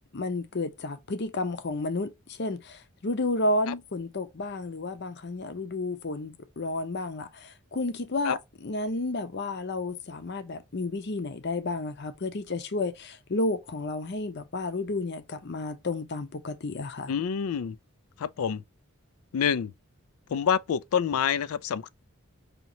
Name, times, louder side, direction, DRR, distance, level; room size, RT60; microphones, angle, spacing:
voice 1, 0.1-17.1, left 2 dB, 50° left, 0.7 m, -31 dB
voice 2, 17.1-17.8 18.2-18.6 19.3-19.7 20.3-21.9, left 7 dB, 85° left, 0.4 m, -27 dB
5.2 x 2.9 x 2.7 m
head